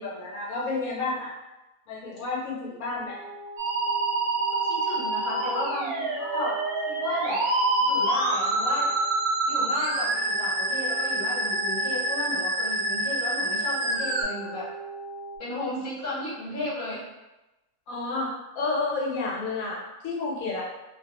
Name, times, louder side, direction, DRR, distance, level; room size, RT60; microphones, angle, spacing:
voice 1, 0.0-1.3 1.9-3.2 17.9-20.6, left 3 dB, 75° left, -5 dB, 1.0 m, -30 dB
sound 1, 3.1-15.4, right 2 dB, 65° right, 0.8 m, -42 dB
Musical instrument, 3.6-14.2, right 2 dB, 90° right, 1.1 m, -27 dB
voice 2, 4.6-6.6 6.9-7.4 7.8-8.9 9.4-14.7 15.4-17.0, left 1 dB, 35° left, -7 dB, 0.8 m, -34 dB
2.3 x 2.3 x 2.8 m, 1.0 s
omnidirectional pair, 1.6 m